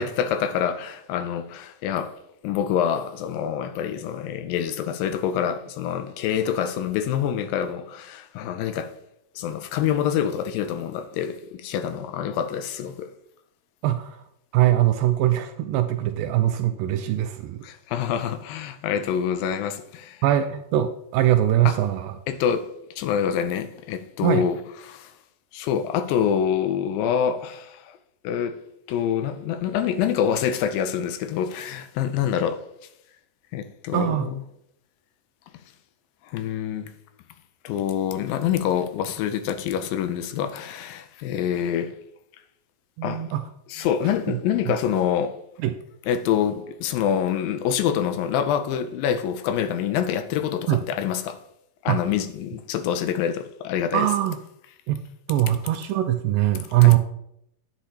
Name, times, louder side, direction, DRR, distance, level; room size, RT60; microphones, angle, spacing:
voice 1, 0.0-2.2 2.4-8.9 9.4-13.1 17.6-20.2 21.7-21.8 22.3-22.7 23.0-24.6 24.8-25.1 25.5-28.0 28.2-28.6 28.9-32.7 33.5-34.3 36.2-36.9 37.6-42.0 43.0-43.3 43.7-45.4 46.1-51.4 51.8-54.1 56.8-57.0, left 9 dB, 80° left, 2.3 m, -26 dB
voice 2, 13.8-14.2 14.5-17.6 20.2-22.2 24.2-24.4 33.9-34.3 43.0-43.4 44.3-44.4 45.6-45.7 50.7-50.8 51.9-52.0 53.9-54.4 54.9-55.0 55.3-57.0, right 13 dB, 80° right, 2.0 m, -21 dB
9.8 x 9.0 x 2.8 m
omnidirectional pair, 4.2 m